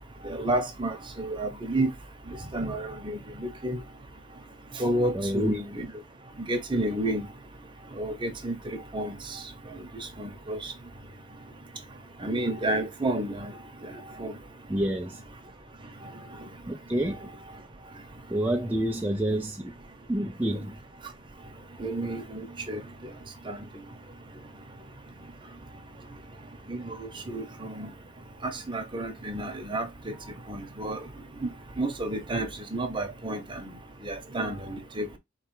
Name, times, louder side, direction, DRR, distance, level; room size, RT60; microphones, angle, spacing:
voice 1, 0.2-1.9 2.5-3.8 4.8-5.9 6.5-7.3 8.0-8.6 8.9-9.2 10.2-10.7 12.2-13.5 14.2-14.3 21.8-22.8 23.5-23.6 26.7-27.9 28.4-30.1 30.5-31.0 31.4-31.5 31.8-33.7 34.0-35.2, right 1 dB, 25° right, 1.0 m, -30 dB
voice 2, 5.1-5.6 14.7-15.2 16.7-17.3 18.3-19.7 20.1-20.8, right 1 dB, 10° right, 0.4 m, -28 dB
4.6 x 3.3 x 3.1 m
head